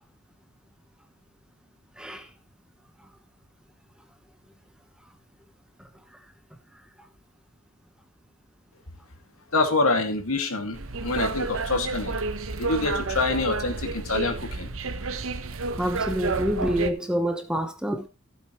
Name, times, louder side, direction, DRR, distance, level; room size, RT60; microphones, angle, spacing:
voice 1, 2.0-2.3 15.8-18.1, equal, 5° right, 1.2 m, -27 dB
voice 2, 9.5-12.1 12.6-14.7, left 3 dB, 90° left, 2.4 m, -26 dB
sound 1, 10.7-16.9, right 3 dB, 80° right, 1.0 m, -30 dB
15.5 x 8.1 x 3.2 m
head